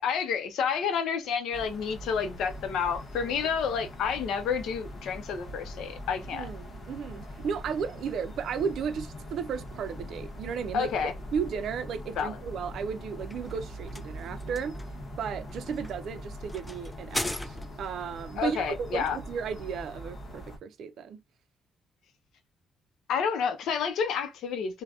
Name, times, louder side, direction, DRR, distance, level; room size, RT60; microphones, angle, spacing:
voice 1, 0.0-6.5 10.7-11.1 12.2-12.4 18.4-19.2 23.1-24.8, left 6 dB, 80° left, 0.5 m, -29 dB
sound 1, 1.5-20.6, equal, 50° left, 0.8 m, -42 dB
voice 2, 6.3-10.9 11.3-14.8 15.2-21.2, right 6 dB, 70° right, 0.4 m, -34 dB
sound 2, 12.9-18.0, left 1 dB, 10° left, 0.3 m, -39 dB
3.3 x 2.1 x 2.4 m
cardioid pair, 75°, 0 cm